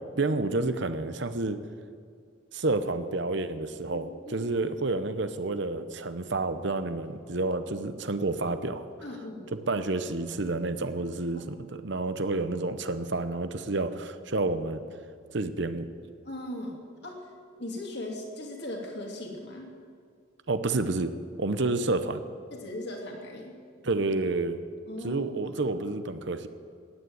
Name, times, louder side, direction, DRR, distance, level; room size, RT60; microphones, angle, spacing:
voice 1, 0.1-1.6 2.5-8.8 9.7-14.8 15.3-15.9 20.5-21.1 21.4-22.2 23.8-24.6 25.0-26.5, right 2 dB, 55° right, 10 dB, 0.8 m, -29 dB
voice 2, 3.9-4.5 9.0-9.5 16.2-16.8 17.0-17.3 17.6-19.7 22.5-23.6 24.9-25.6, left 1 dB, 55° left, 0 dB, 2.7 m, -39 dB
14.0 x 9.6 x 9.5 m, 2.2 s
head